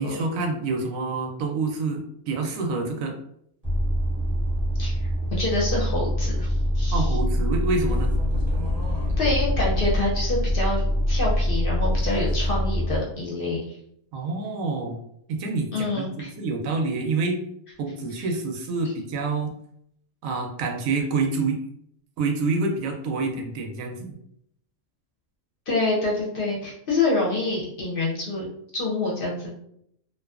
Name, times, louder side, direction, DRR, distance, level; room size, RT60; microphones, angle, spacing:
voice 1, 0.0-3.1 6.9-8.1 14.1-15.0 15.3-17.4 17.8-19.5 20.2-21.6 22.2-24.2, right 3 dB, 85° right, 3 dB, 1.0 m, -27 dB
sound 1, 3.6-13.0, left 1 dB, 20° right, 0.8 m, -24 dB
voice 2, 5.3-7.1 9.2-13.6 15.7-16.3 25.7-28.5 28.7-29.5, left 2 dB, 55° left, -4 dB, 0.7 m, -26 dB
2.6 x 2.2 x 2.3 m, 0.71 s
omnidirectional pair, 1.4 m